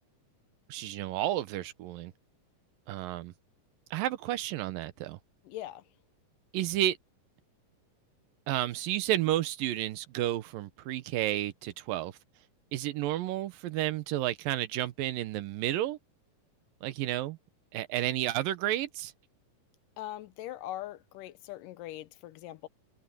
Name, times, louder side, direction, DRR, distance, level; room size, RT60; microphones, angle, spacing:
voice 1, 0.7-2.1 2.9-3.3 3.9-5.2 6.5-7.0 8.5-12.1 12.7-16.0 16.8-17.4 17.7-19.1, right 13 dB, 80° right, 2.7 m, -31 dB
voice 2, 5.4-5.8 20.0-22.7, left 14 dB, 75° left, 2.5 m, -41 dB
omnidirectional pair, 3.9 m